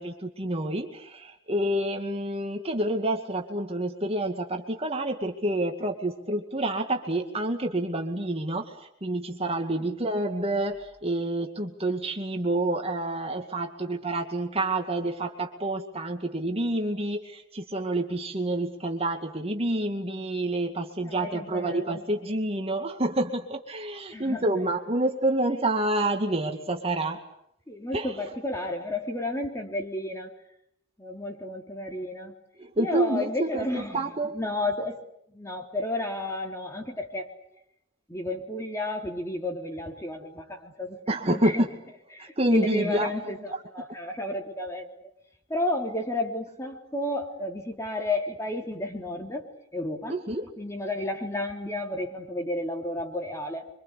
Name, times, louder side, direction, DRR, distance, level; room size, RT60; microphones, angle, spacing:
voice 1, 0.0-27.2 27.9-28.1 32.6-34.3 41.1-41.7 42.2-43.1 50.1-50.5, right 1 dB, 30° right, 3 dB, 2.2 m, -28 dB
voice 2, 21.0-22.0 24.1-24.5 27.7-30.3 31.0-32.4 32.8-34.1 34.3-35.0 35.3-37.3 38.1-41.0 41.3-41.6 42.1-44.9 45.5-50.2 50.6-53.7, left 1 dB, 15° left, 3 dB, 3.7 m, -32 dB
27.0 x 24.5 x 8.4 m, 0.74 s
head